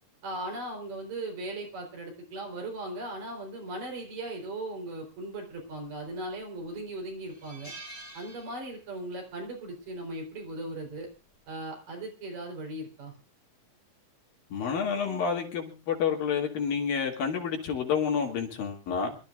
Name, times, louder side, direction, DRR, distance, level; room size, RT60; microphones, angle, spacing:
voice 1, 0.2-7.7 8.1-11.1 11.5-13.1, right 1 dB, 70° right, 1 dB, 5.6 m, -38 dB
sound 1, 6.1-6.4 6.8-6.9 7.3-9.1 9.3-9.6 10.8-11.1, right 2 dB, 5° left, 6.1 m, -47 dB
voice 2, 14.5-19.1, left 6 dB, 85° left, 1 dB, 4.3 m, -29 dB
26.5 x 13.0 x 2.5 m, 0.31 s
omnidirectional pair, 4.0 m